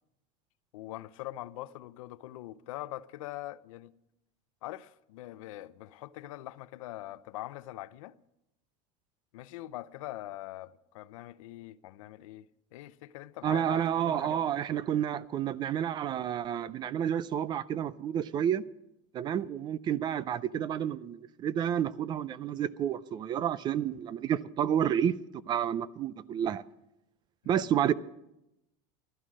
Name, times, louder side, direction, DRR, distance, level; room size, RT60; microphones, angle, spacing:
voice 1, 0.7-3.9 4.6-8.2 9.3-12.4 12.7-14.4 27.4-27.7, left 16 dB, 85° left, 0.7 m, -43 dB
voice 2, 13.4-18.6 19.1-25.1 25.5-26.6 27.5-27.9, right 9 dB, 25° right, 0.4 m, -30 dB
15.5 x 12.5 x 6.2 m
supercardioid pair, 155°, 17 cm